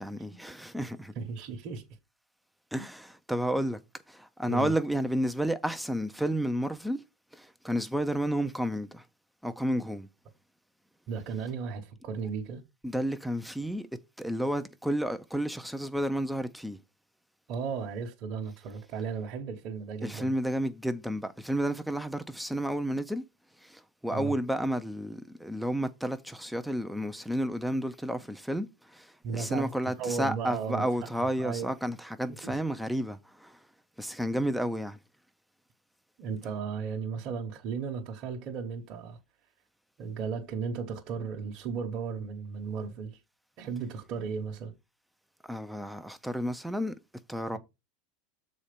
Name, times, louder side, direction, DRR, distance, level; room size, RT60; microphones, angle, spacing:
voice 1, 0.0-1.1 2.7-3.8 4.1-7.0 7.3-9.1 9.4-10.1 12.8-13.9 14.2-16.8 20.0-23.2 23.6-33.6 34.0-35.0 45.4-46.9 47.3-47.6, equal, ahead, 0.4 m, -31 dB
voice 2, 1.1-1.8 2.8-2.9 4.5-4.7 11.1-12.6 17.5-20.3 24.1-24.4 29.2-29.7 30.0-30.8 31.4-31.7 32.4-32.5 36.2-39.2 40.0-43.2 43.6-44.7, right 6 dB, 35° right, 1.0 m, -35 dB
7.2 x 4.2 x 5.1 m
supercardioid pair, 175°, 0 cm